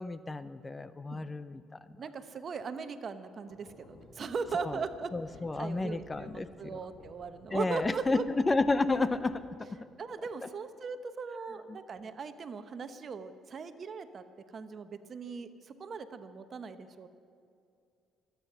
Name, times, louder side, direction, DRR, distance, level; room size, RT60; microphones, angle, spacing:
voice 1, 0.0-1.6 4.5-4.8 5.1-6.8 7.5-9.4 11.7-11.8, left 3 dB, 25° left, 14 dB, 0.6 m, -31 dB
voice 2, 2.0-5.1 5.5-8.3 10.0-14.2 14.5-17.1, right 5 dB, 50° right, 10 dB, 1.0 m, -39 dB
sound 1, 3.5-9.6, left 3 dB, 50° left, 2.2 m, -55 dB
25.0 x 9.2 x 5.6 m, 2.4 s
supercardioid pair, 65°, 0 cm